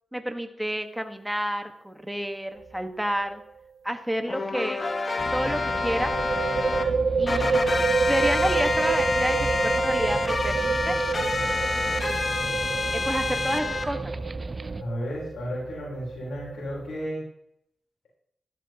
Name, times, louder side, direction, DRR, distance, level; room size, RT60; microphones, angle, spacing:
voice 1, 0.1-3.4 3.8-4.9 5.3-6.1 7.2-7.6 8.1-11.0 12.9-14.1, equal, 5° right, 6 dB, 1.5 m, -30 dB
sound 1, 2.6-2.8 3.1-3.2 5.7-17.0, right 4 dB, 85° right, 1.5 m, -28 dB
sound 2, 4.3-6.8 7.3-13.8, left 3 dB, 45° left, 1.4 m, -28 dB
sound 3, 5.2-14.8, right 3 dB, 40° right, 0.6 m, -36 dB
voice 2, 14.8-17.2, equal, 85° left, -4 dB, 4.0 m, -33 dB
14.0 x 11.5 x 3.0 m, 0.74 s
cardioid pair, 55°, 0 cm